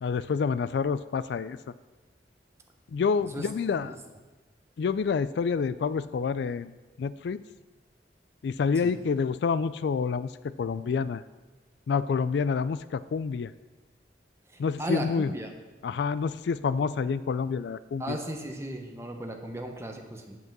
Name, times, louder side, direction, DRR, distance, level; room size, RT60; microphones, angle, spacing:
voice 1, 0.0-1.6 2.9-4.0 4.8-6.7 7.0-7.4 8.4-10.3 10.6-11.2 11.9-13.5 14.6-15.3 15.8-18.2, left 5 dB, 75° left, 15 dB, 0.3 m, -28 dB
voice 2, 14.5-15.5 18.0-20.4, right 1 dB, 15° right, 3 dB, 0.9 m, -36 dB
8.1 x 5.5 x 7.3 m, 1.2 s
head